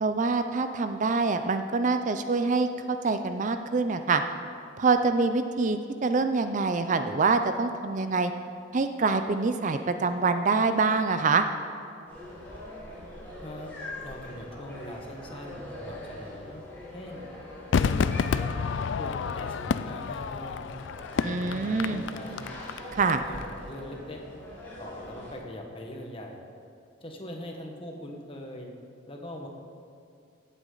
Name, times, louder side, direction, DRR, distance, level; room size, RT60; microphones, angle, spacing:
voice 1, 0.0-4.2 4.8-8.3 8.7-11.5 21.2-22.0 22.9-23.2, right 4 dB, 40° right, 8 dB, 0.5 m, -25 dB
sound 1, 12.1-25.4, left 1 dB, 10° left, 3.2 m, -43 dB
voice 2, 13.4-13.7 14.0-16.6 16.9-17.2 17.8-18.6 19.0-20.8 21.1-22.6 23.2-24.2 24.8-26.4 27.0-28.7 29.1-29.5, left 1 dB, 30° left, 1 dB, 1.4 m, -41 dB
Crowd / Fireworks, 17.7-23.1 23.4-23.5, left 6 dB, 65° left, 0.3 m, -29 dB
16.5 x 8.3 x 3.9 m, 2.5 s
head